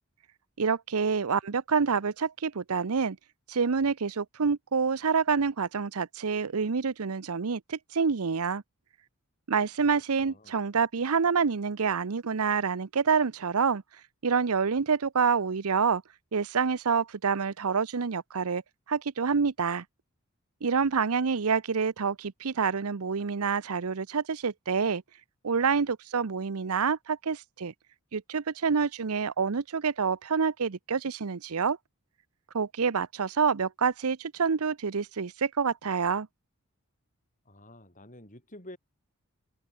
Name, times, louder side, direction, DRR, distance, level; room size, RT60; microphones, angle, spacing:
voice 1, 0.6-3.2 3.5-8.6 9.5-13.8 14.2-16.0 16.3-18.6 18.9-19.8 20.6-25.0 25.4-27.7 28.1-31.8 32.5-36.3, right 5 dB, 80° right, 0.7 m, -27 dB
voice 2, 9.9-10.6 37.5-38.8, left 1 dB, 35° left, 7.7 m, -49 dB
open air
head